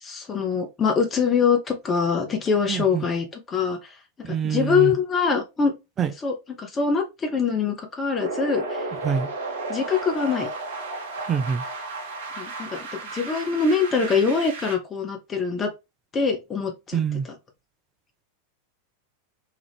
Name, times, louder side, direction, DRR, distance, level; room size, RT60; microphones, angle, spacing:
voice 1, 0.0-3.8 4.2-5.7 6.2-8.9 9.7-10.5 12.4-15.7 16.1-17.0, left 5 dB, 20° left, 0.8 m, -24 dB
voice 2, 2.7-3.0 4.2-4.9 6.0-6.1 9.0-9.3 11.3-11.6 16.9-17.3, right 7 dB, 25° right, 0.4 m, -25 dB
sound 1, 8.2-14.7, right 3 dB, 55° right, 0.8 m, -33 dB
2.9 x 2.4 x 3.3 m
figure-of-eight pair, 90°, 0 cm